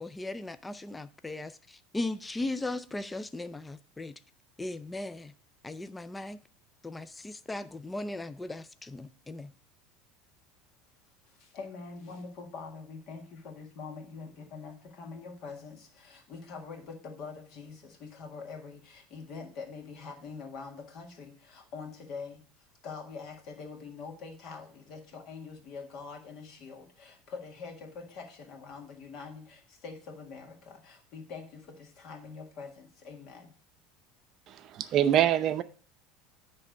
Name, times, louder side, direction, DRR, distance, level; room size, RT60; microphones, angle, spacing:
voice 1, 0.0-4.1 4.6-5.3 5.6-6.4 6.8-9.5, left 2 dB, 10° left, 0.3 m, -37 dB
voice 2, 11.3-22.4 22.8-33.5, left 4 dB, 50° left, 1.8 m, -44 dB
voice 3, 34.5-35.6, right 11 dB, 40° right, 0.6 m, -25 dB
9.9 x 3.3 x 6.2 m
supercardioid pair, 145°, 0 cm